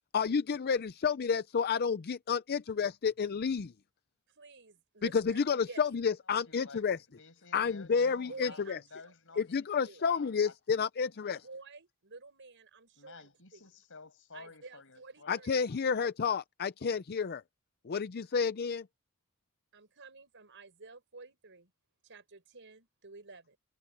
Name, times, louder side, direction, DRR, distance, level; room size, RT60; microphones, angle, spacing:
voice 1, 0.1-3.7 5.1-7.0 7.5-8.8 9.4-11.4 15.3-17.4 17.8-18.9, left 6 dB, 45° left, 0.5 m, -30 dB
voice 2, 4.3-5.4 5.7-5.8 8.3-9.4 9.8-10.0 11.4-13.6 14.3-15.5 19.7-21.7 22.0-23.6, right 3 dB, 60° right, 6.2 m, -51 dB
voice 3, 6.3-8.6 8.9-9.6 10.0-11.4 13.0-15.4, left 4 dB, 65° left, 6.8 m, -53 dB
head